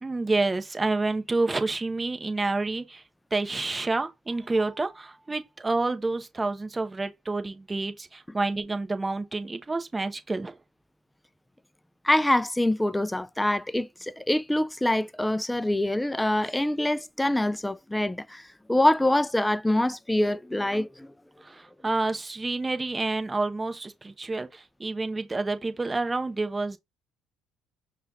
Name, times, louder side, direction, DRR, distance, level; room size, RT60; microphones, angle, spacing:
voice 1, 0.0-3.0 3.3-10.6 21.4-26.8, right 3 dB, 20° right, 0.8 m, -29 dB
voice 2, 12.0-18.4 18.7-21.1, left 1 dB, 10° left, 0.3 m, -25 dB
5.5 x 2.3 x 3.9 m
hypercardioid pair, 65°, 0 cm